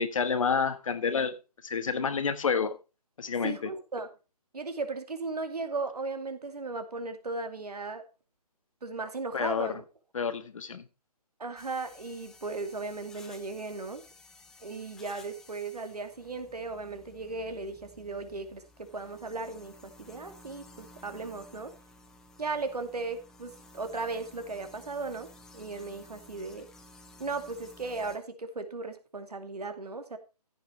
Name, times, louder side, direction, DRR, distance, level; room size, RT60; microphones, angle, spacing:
voice 1, 0.0-1.3 1.6-2.8 3.2-3.7 9.3-9.8 10.1-10.9, left 5 dB, 55° left, 1.6 m, -29 dB
voice 2, 3.4-4.1 4.5-8.0 8.8-9.8 11.4-14.0 14.6-21.7 22.4-25.3 25.5-26.7 27.2-30.2, right 3 dB, 70° right, 2.4 m, -36 dB
sound 1, 11.6-28.2, left 2 dB, 5° left, 0.5 m, -54 dB
15.0 x 5.9 x 4.5 m
figure-of-eight pair, 150°, 21 cm